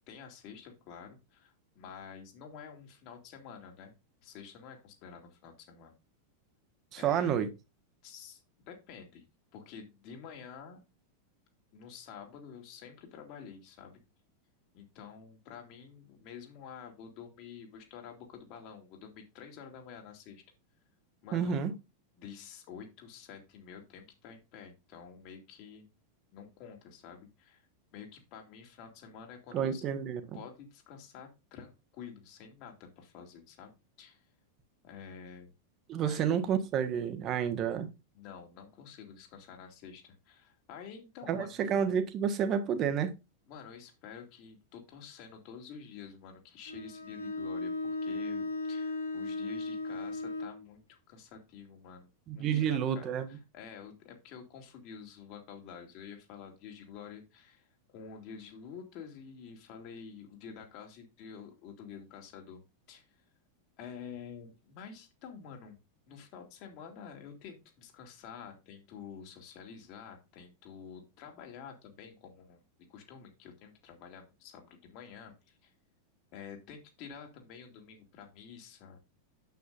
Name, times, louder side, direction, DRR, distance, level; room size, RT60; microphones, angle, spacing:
voice 1, 0.1-3.9 4.2-6.0 7.0-7.4 8.0-9.2 9.5-10.8 11.7-14.0 14.7-20.4 21.2-21.6 22.2-25.9 26.3-29.8 30.3-34.3 34.8-35.5 36.1-36.4 38.1-41.7 43.5-62.6 62.9-63.2 63.8-65.8 66.1-72.6 72.9-75.7 76.3-79.0, left 7 dB, 45° left, 2.6 m, -49 dB
voice 2, 6.9-7.5 21.3-21.7 29.5-30.4 35.9-37.9 41.3-43.1 52.3-53.3, right 8 dB, 35° right, 1.3 m, -30 dB
Bowed string instrument, 46.6-50.6, left 3 dB, 85° left, 3.1 m, -36 dB
9.4 x 8.0 x 2.5 m
figure-of-eight pair, 90°, 0 cm